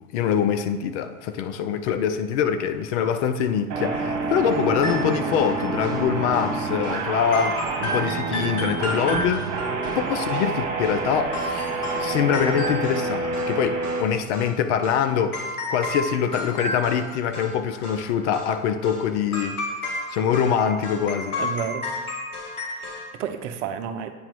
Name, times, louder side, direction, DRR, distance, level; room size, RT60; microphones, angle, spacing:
voice 1, 0.1-15.4 15.7-19.6 20.1-21.4, left 8 dB, 50° left, 0.6 m, -24 dB
sound 1, 3.7-14.0, right 3 dB, 40° right, 1.4 m, -28 dB
sound 2, 4.5-6.0 6.3-6.5 6.8-7.0 7.3-11.0 11.3-13.6 13.8-14.5 14.8-15.0 15.3-17.6 17.8-18.0 18.3-18.5 18.8-19.0 19.3-23.1, left 1 dB, 90° left, 1.6 m, -32 dB
voice 2, 21.4-21.9 22.6-24.1, right 8 dB, 55° right, 0.7 m, -31 dB
8.6 x 2.9 x 4.5 m
hypercardioid pair, 110°, 44 cm